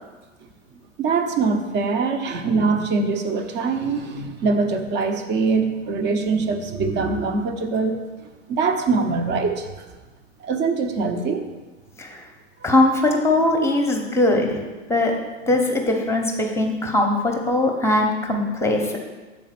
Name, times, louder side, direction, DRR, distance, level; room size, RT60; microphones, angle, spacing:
voice 1, 1.0-8.0 8.5-9.8 10.4-11.4, right 4 dB, 30° right, 6 dB, 0.8 m, -23 dB
voice 2, 12.6-14.6 14.9-15.1 15.5-19.0, left 2 dB, 5° left, 2 dB, 0.9 m, -20 dB
7.2 x 4.3 x 5.9 m, 1.2 s
hypercardioid pair, 105°, 39 cm